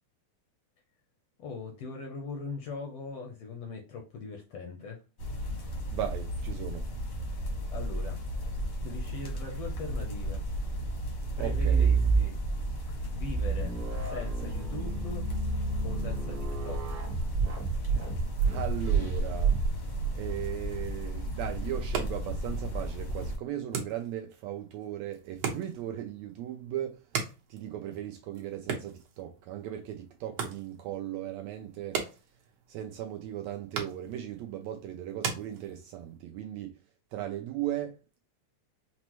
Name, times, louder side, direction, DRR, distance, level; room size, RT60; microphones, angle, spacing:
voice 1, 1.4-5.0 7.3-8.2 8.8-10.4 11.4-12.4 13.2-15.3 15.8-17.0, left 4 dB, 75° left, 1.4 m, -41 dB
sound 1, 5.2-23.4, equal, 60° left, 0.8 m, -35 dB
voice 2, 5.9-6.9 11.4-11.9 18.4-19.6 20.1-27.0 27.5-32.0 32.7-36.7 37.1-38.2, right 11 dB, 80° right, 1.6 m, -37 dB
sound 2, 11.2-12.6 13.1-20.1, right 5 dB, 45° right, 1.0 m, -29 dB
sound 3, 21.7-36.2, right 6 dB, 65° right, 1.7 m, -40 dB
5.9 x 2.1 x 2.9 m
omnidirectional pair, 3.4 m